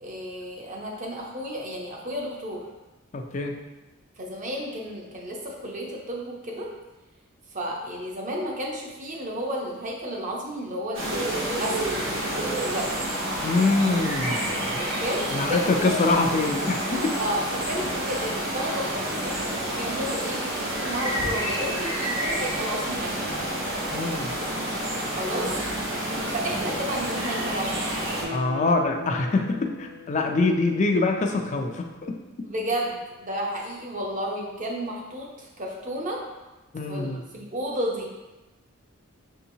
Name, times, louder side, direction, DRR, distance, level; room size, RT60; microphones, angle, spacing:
voice 1, 0.0-2.7 4.2-6.7 7.5-12.9 14.8-16.0 17.2-23.2 25.1-25.5 26.3-28.1 32.4-36.2 36.9-38.1, equal, 40° right, -1 dB, 0.7 m, -32 dB
voice 2, 3.1-3.5 13.4-14.8 15.3-17.1 23.9-24.3 28.3-32.2 36.7-37.2, left 3 dB, 35° left, 3 dB, 0.4 m, -24 dB
sound 1, 10.9-28.2, right 1 dB, 75° right, 1.1 m, -29 dB
Guitar, 28.2-31.5 31.8-31.9, left 5 dB, 55° right, 0.3 m, -40 dB
6.1 x 2.8 x 2.7 m, 1.1 s
head